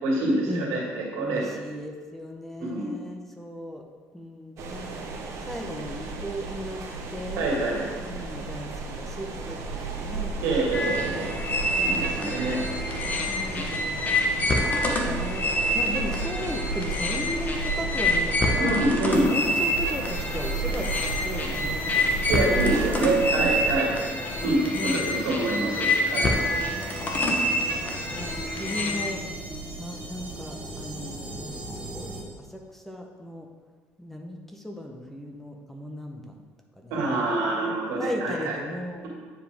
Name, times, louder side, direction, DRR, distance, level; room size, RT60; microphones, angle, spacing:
voice 1, 0.0-1.5 2.6-3.0 7.4-7.8 10.4-11.3 11.8-12.6 13.5-13.7 18.6-19.3 22.3-23.9 24.4-26.5 36.9-38.5, right 2 dB, 85° right, -2 dB, 2.0 m, -26 dB
voice 2, 1.2-3.8 4.1-6.8 7.1-7.5 8.0-11.1 11.8-12.3 13.3-14.1 14.8-18.9 19.2-22.6 23.4-25.1 26.6-27.4 28.1-29.2 29.8-32.1 32.4-33.5 34.0-36.4 36.8-37.1 37.6-39.1, equal, 5° left, 2 dB, 0.8 m, -37 dB
sound 1, 4.6-23.8, right 3 dB, 60° right, 1.1 m, -34 dB
sound 2, 10.7-29.1, left 1 dB, 30° left, 1.0 m, -27 dB
sound 3, 19.1-32.2, right 2 dB, 20° right, 1.4 m, -40 dB
9.0 x 5.0 x 3.5 m, 1.5 s
cardioid pair, 110°, 6 cm